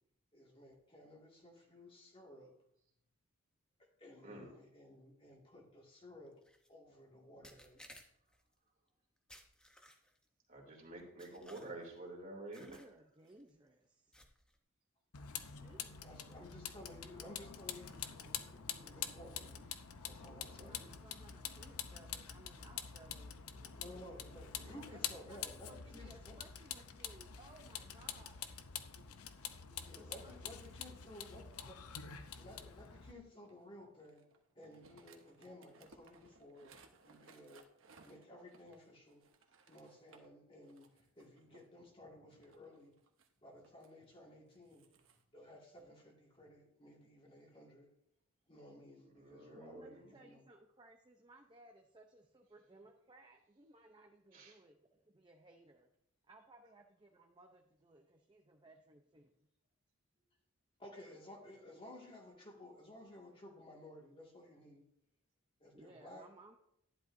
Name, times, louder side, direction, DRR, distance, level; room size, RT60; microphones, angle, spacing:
voice 1, 0.3-2.5 4.0-6.4 6.7-8.1 15.8-19.7 20.0-20.9 23.7-26.4 29.8-31.8 32.3-34.3 34.5-36.7 37.1-37.7 38.0-39.2 39.7-43.0 43.4-45.0 45.3-47.9 48.5-50.4 60.8-64.8 65.6-66.3, left 1 dB, 25° left, -2 dB, 2.1 m, -56 dB
sound 1, 6.4-6.7 7.4-8.4 9.3-10.3 11.2-12.0 12.5-12.9 13.3-13.5 14.1-14.6, equal, 5° left, 0.9 m, -60 dB
voice 2, 10.5-12.8 24.6-24.8 29.7-29.8 49.1-50.1 54.3-54.6, right 2 dB, 35° right, -1 dB, 2.8 m, -50 dB
voice 3, 12.6-14.2 15.6-15.8 16.4-16.6 20.6-24.2 24.6-28.6 29.0-29.2 29.6-31.0 49.5-55.9 56.3-59.4 65.7-66.6, right 2 dB, 20° right, 2 dB, 0.6 m, -61 dB
Vehicle, 15.1-33.1, left 8 dB, 80° left, 0.8 m, -47 dB
sound 2, 33.5-40.3 40.6-41.7 42.3-43.9 44.5-45.2, right 4 dB, 60° right, 1.1 m, -64 dB
12.5 x 11.0 x 2.7 m, 0.74 s
head